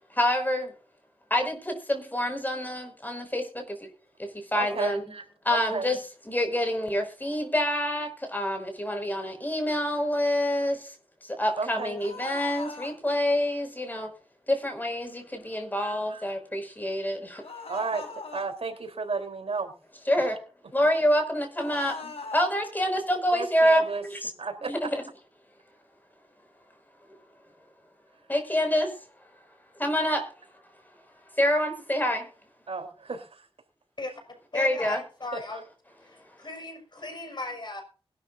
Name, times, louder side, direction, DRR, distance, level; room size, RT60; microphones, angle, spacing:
voice 1, 0.2-0.7 1.3-3.4 4.5-5.0 5.5-6.0 6.3-10.8 11.4-14.1 14.5-17.3 20.1-20.4 20.7-21.9 22.3-23.8 24.1-24.3 24.7-24.9 28.3-28.9 29.8-30.2 31.4-32.2 34.5-35.0, left 1 dB, 15° left, 4 dB, 6.1 m, -26 dB
voice 2, 4.5-5.2 5.5-5.9 11.6-12.0 16.1-16.3 17.7-18.1 18.3-19.7 23.3-24.0 24.4-24.7 32.7-33.5 35.3-35.6, right 4 dB, 75° right, 5 dB, 3.8 m, -32 dB
sound 1, 12.0-13.0 17.4-18.5 21.5-22.5, left 3 dB, 75° left, 4.8 m, -40 dB
voice 3, 34.5-35.6 36.4-37.8, left 2 dB, 45° left, 4 dB, 6.0 m, -36 dB
21.5 x 12.5 x 2.7 m, 0.37 s
wide cardioid pair, 80°, 10 cm